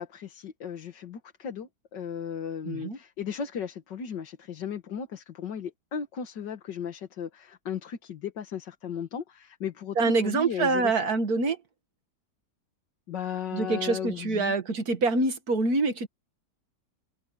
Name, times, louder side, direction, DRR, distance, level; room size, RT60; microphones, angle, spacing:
voice 1, 0.0-11.0 13.1-14.5, left 7 dB, 85° left, 2.2 m, -36 dB
voice 2, 2.7-3.0 10.0-11.6 13.5-16.1, right 3 dB, 60° right, 2.2 m, -25 dB
omnidirectional pair, 1.9 m